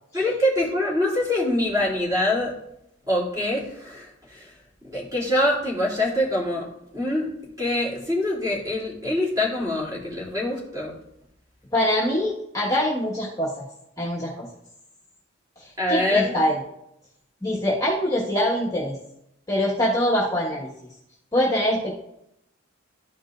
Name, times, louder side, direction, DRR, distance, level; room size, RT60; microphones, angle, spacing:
voice 1, 0.1-2.5 3.1-4.5 4.8-6.7 6.9-7.3 7.6-10.9 15.8-16.4, left 1 dB, 15° right, -4 dB, 2.8 m, -24 dB
voice 2, 11.7-13.6 14.0-14.3 15.6-16.5 17.4-18.9 19.5-20.7 21.3-21.9, equal, 15° left, -5 dB, 1.4 m, -24 dB
13.0 x 5.4 x 2.5 m, 0.79 s
head